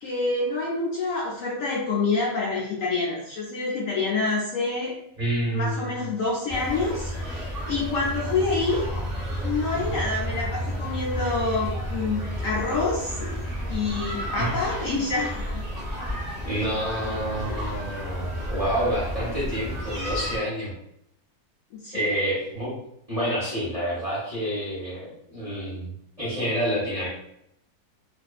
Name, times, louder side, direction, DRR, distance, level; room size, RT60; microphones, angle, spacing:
voice 1, 0.0-5.0 5.5-9.0 9.4-13.4 13.7-15.7 17.5-17.6 21.7-22.1, left 3 dB, 65° left, -4 dB, 0.9 m, -27 dB
voice 2, 5.2-6.0 14.4-14.9 16.4-20.7 21.9-22.7 23.1-25.9 26.2-27.1, right 1 dB, 30° right, -9 dB, 0.7 m, -28 dB
sound 1, 6.5-20.4, equal, ahead, 1.0 m, -31 dB
2.5 x 2.4 x 2.3 m, 0.76 s
omnidirectional pair, 1.7 m